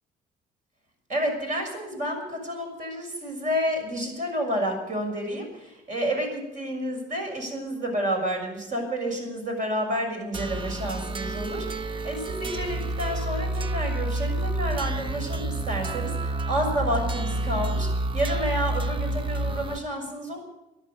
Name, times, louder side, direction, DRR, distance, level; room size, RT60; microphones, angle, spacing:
voice 1, 1.1-20.4, equal, 50° right, 2 dB, 6.4 m, -30 dB
sound 1, 10.3-19.8, right 2 dB, 30° right, 0.8 m, -29 dB
13.5 x 11.0 x 9.5 m, 0.97 s
cardioid pair, 110°, 17 cm